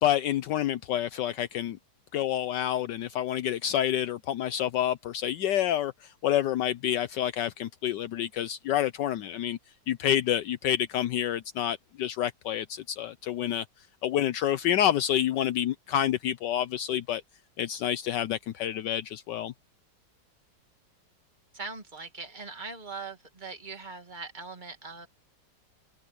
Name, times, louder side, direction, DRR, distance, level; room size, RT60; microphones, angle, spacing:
voice 1, 0.0-1.8 2.1-9.6 9.9-13.6 14.0-17.2 17.6-19.5, left 11 dB, 75° left, 1.3 m, -28 dB
voice 2, 21.5-25.1, right 4 dB, 25° right, 2.3 m, -41 dB
omnidirectional pair, 2.0 m